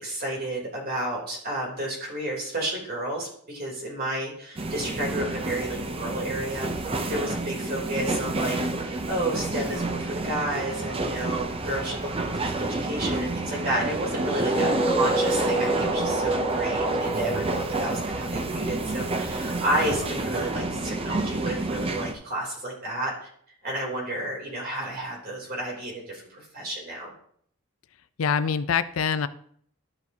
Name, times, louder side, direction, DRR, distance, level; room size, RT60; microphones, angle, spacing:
voice 1, 0.0-6.7 7.0-23.1 23.6-27.1, right 1 dB, 45° right, -2 dB, 3.2 m, -31 dB
sound 1, 4.6-22.1, right 2 dB, 30° right, 0.6 m, -29 dB
sound 2, 14.3-18.9, right 2 dB, 5° right, 2.3 m, -30 dB
voice 2, 28.2-29.3, left 6 dB, 75° left, 13 dB, 0.5 m, -24 dB
13.0 x 6.0 x 2.8 m, 0.63 s
head